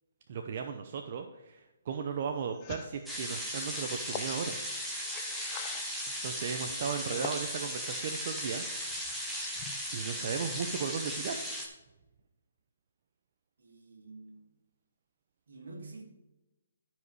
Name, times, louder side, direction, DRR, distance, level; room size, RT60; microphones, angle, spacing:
voice 1, 0.3-4.6 6.2-8.6 9.9-11.4, right 6 dB, 40° right, 5 dB, 0.7 m, -36 dB
sound 1, 2.5-6.2 6.8-8.4 8.8-9.8, left 9 dB, 25° left, 0.6 m, -46 dB
sound 2, 3.1-11.7, equal, 5° right, 1.2 m, -37 dB
voice 2, 13.6-14.5 15.5-16.0, right 3 dB, 75° right, 2 dB, 2.5 m, -50 dB
12.0 x 5.1 x 4.8 m, 1.0 s
hypercardioid pair, 160°, 0 cm